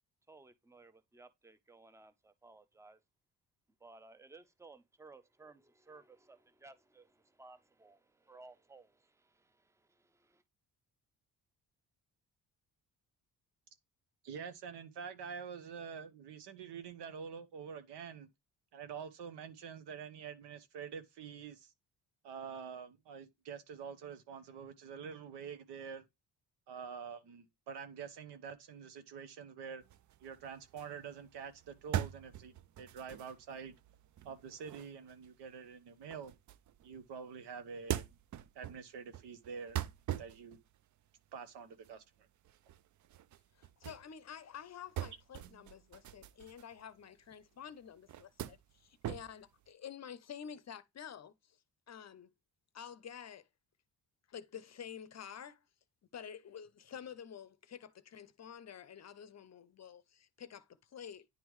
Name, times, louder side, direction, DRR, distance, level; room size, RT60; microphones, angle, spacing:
voice 1, 0.3-3.0 3.8-10.4, right 3 dB, 5° right, 0.7 m, -58 dB
voice 2, 14.2-18.3 18.7-21.7 22.2-26.0 26.7-29.8 30.2-33.8 34.2-36.3 36.8-38.0 38.5-39.8 40.2-40.6 41.3-42.3, right 6 dB, 80° right, 1.0 m, -46 dB
sound 1, 29.8-37.1 37.5-44.1 44.3-47.4 47.8-49.7, right 12 dB, 45° right, 0.5 m, -43 dB
voice 3, 43.5-51.6 51.9-52.3 52.7-53.5 54.3-55.6 56.1-61.3, left 8 dB, 40° left, 0.6 m, -49 dB
9.7 x 3.5 x 3.1 m
cardioid pair, 75°, 41 cm